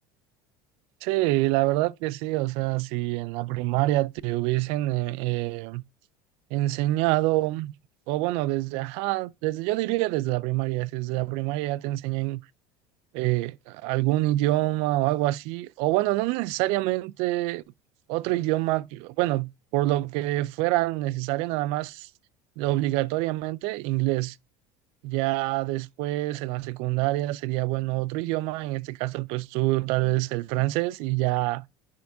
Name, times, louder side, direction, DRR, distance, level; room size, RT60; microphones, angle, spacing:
voice 1, 1.0-5.8 6.5-7.7 8.1-12.4 13.1-17.6 18.1-22.1 22.6-24.4 25.0-31.6, right 18 dB, 60° right, 0.4 m, -26 dB
10.5 x 3.6 x 2.6 m
cardioid pair, 155°, 11 cm